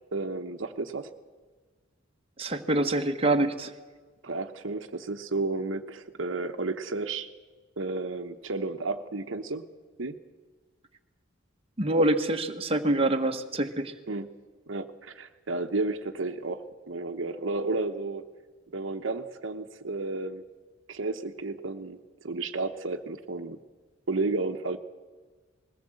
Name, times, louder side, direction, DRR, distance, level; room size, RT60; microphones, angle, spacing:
voice 1, 0.1-1.1 4.2-7.3 7.8-9.7 10.0-10.2 14.1-14.3 14.7-18.2 18.7-20.4 20.9-22.0 22.2-23.6 24.1-24.8, right 3 dB, 75° right, 7 dB, 1.1 m, -32 dB
voice 2, 2.4-3.7 11.8-13.9, right 1 dB, 30° right, 4 dB, 1.3 m, -25 dB
20.5 x 17.0 x 7.7 m, 1.4 s
head